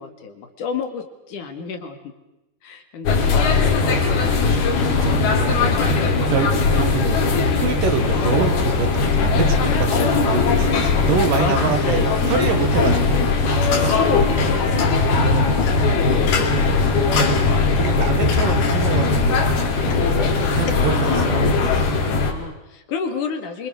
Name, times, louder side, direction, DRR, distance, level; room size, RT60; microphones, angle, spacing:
voice 1, 0.0-2.1 2.6-4.2 4.6-5.4 11.4-12.1 12.5-12.9 14.0-16.5 17.2-17.3 17.7-18.1 20.1-20.5 21.1-21.2 22.1-23.7, left 6 dB, 60° left, 7 dB, 3.2 m, -31 dB
sound 1, 3.1-22.3, left 4 dB, 80° left, 4.8 m, -19 dB
voice 2, 4.4-5.9 6.3-13.3 13.8-14.0 17.8-19.5 20.5-21.4, right 6 dB, 65° right, 8 dB, 3.0 m, -26 dB
26.0 x 25.0 x 6.3 m, 0.97 s
omnidirectional pair, 4.4 m